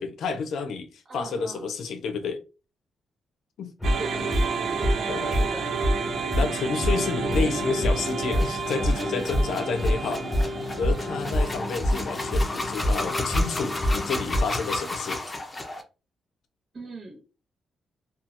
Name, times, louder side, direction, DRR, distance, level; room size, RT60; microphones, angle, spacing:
voice 1, 0.0-2.4 3.6-3.7 5.1-5.4 6.3-10.2 10.8-15.2, left 5 dB, 80° left, 0.5 m, -30 dB
voice 2, 1.1-1.7 4.0-4.3 4.8-5.7 7.2-7.8 16.7-17.2, right 2 dB, 45° right, 1.2 m, -40 dB
sound 1, 3.8-14.4, left 1 dB, ahead, 1.1 m, -27 dB
sound 2, 3.8-12.1, right 6 dB, 70° right, 0.3 m, -32 dB
sound 3, 7.9-15.8, left 2 dB, 20° left, 0.5 m, -34 dB
2.7 x 2.3 x 2.5 m
cardioid pair, 135°, 0 cm